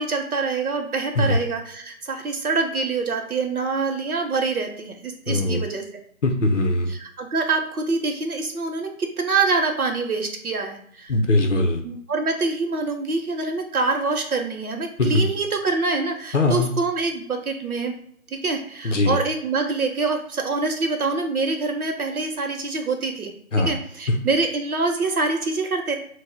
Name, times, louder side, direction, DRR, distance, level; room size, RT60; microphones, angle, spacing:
voice 1, 0.0-5.8 6.9-11.1 11.8-18.0 18.3-23.3 23.6-25.9, right 3 dB, 85° right, 4 dB, 0.7 m, -25 dB
voice 2, 5.3-5.6 6.2-6.9 11.1-11.8 15.0-15.3 16.3-16.7 18.8-19.2 23.5-23.8, left 2 dB, 60° left, 4 dB, 0.5 m, -20 dB
2.1 x 2.1 x 3.2 m, 0.64 s
figure-of-eight pair, 165°, 43 cm